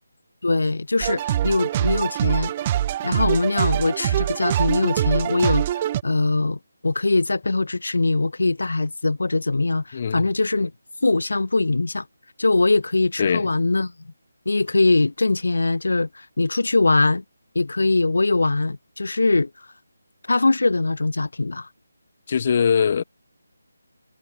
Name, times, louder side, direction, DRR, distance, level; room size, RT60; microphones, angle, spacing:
voice 1, 0.4-2.5 3.0-10.7 11.0-12.0 12.4-13.9 14.4-17.2 17.5-19.5 20.3-21.7, left 3 dB, 70° left, 3.2 m, -22 dB
sound 1, 1.0-6.0, right 12 dB, 25° right, 1.5 m, -24 dB
voice 2, 9.9-10.3 13.2-13.5 22.3-23.0, left 7 dB, 40° left, 3.9 m, -21 dB
figure-of-eight pair, 155°, 0 cm